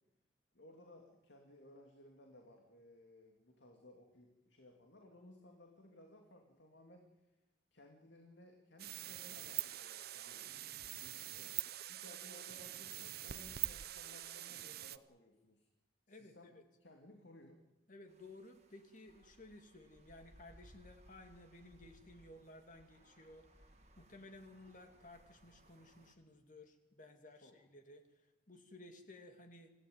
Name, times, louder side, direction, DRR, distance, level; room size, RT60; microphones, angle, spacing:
voice 1, 0.5-7.1 7.7-10.5 11.0-11.6 11.9-15.7 16.1-17.6 27.4-27.5, left 1 dB, 75° left, 3 dB, 2.5 m, -60 dB
sound 1, 8.8-15.0, right 14 dB, 55° right, 0.8 m, -44 dB
voice 2, 16.1-16.6 17.9-29.7, left 2 dB, 45° left, 6 dB, 2.4 m, -57 dB
sound 2, 18.1-26.1, right 1 dB, 40° right, 2.1 m, -65 dB
25.5 x 16.0 x 9.5 m, 1.0 s
head